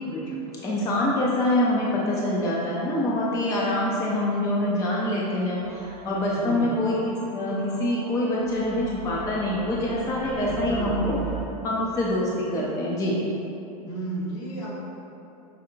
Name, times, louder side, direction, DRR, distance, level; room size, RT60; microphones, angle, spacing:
voice 1, 0.0-0.4 6.4-6.8 10.5-11.5 13.9-14.7, right 1 dB, 60° left, -5 dB, 1.2 m, -33 dB
voice 2, 0.6-11.2 11.6-13.2, left 1 dB, 15° left, -4 dB, 0.4 m, -25 dB
sound 1, 5.6-11.4, right 6 dB, 55° right, 0.6 m, -39 dB
5.3 x 2.7 x 2.6 m, 2.8 s
supercardioid pair, 125°, 20 cm